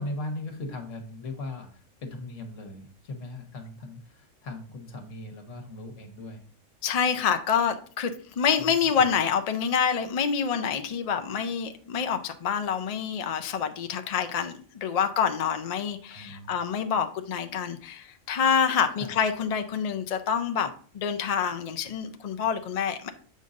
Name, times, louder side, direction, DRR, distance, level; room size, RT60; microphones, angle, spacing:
voice 1, 0.0-6.4 8.6-8.7 16.1-16.5 19.0-19.1, left 2 dB, 75° left, 5 dB, 1.5 m, -38 dB
voice 2, 6.8-20.7 20.9-23.1, left 7 dB, 55° left, 8 dB, 0.4 m, -27 dB
7.5 x 5.2 x 2.5 m, 0.44 s
omnidirectional pair, 1.3 m